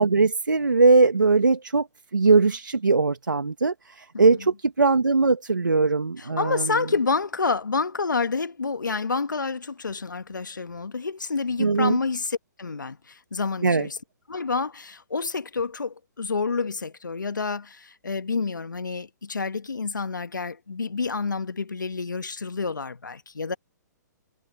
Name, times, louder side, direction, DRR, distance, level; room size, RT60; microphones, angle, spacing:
voice 1, 0.0-1.9 2.1-6.8 11.6-12.0 13.6-13.9, right 3 dB, 85° right, 2.1 m, -20 dB
voice 2, 4.1-4.5 6.2-14.0 14.3-23.6, left 4 dB, 85° left, 1.5 m, -28 dB
figure-of-eight pair, 130°, 10 cm